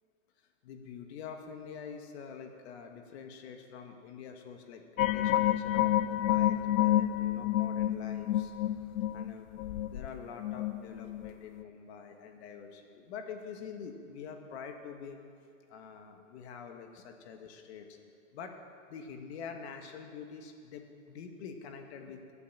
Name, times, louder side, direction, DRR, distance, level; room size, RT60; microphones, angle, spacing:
voice 1, 0.6-8.5 9.1-9.5 9.9-15.2 15.7-18.0 18.3-18.5 18.9-22.3, left 6 dB, 50° left, 5 dB, 1.6 m, -46 dB
sound 1, 5.0-11.3 11.6-11.7, left 12 dB, 80° left, 0.5 m, -29 dB
13.0 x 8.6 x 7.3 m, 2.4 s
hypercardioid pair, 155°, 41 cm